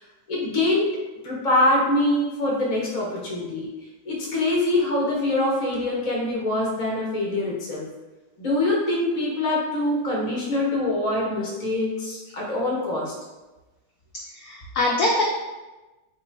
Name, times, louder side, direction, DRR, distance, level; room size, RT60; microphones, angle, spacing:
voice 1, 0.3-1.0 1.2-3.7 4.0-7.8 8.4-13.1, left 1 dB, 40° left, -3 dB, 0.5 m, -24 dB
voice 2, 14.1-15.2, left 2 dB, 85° left, -2 dB, 0.8 m, -24 dB
3.1 x 2.9 x 4.4 m, 1.1 s
omnidirectional pair, 2.2 m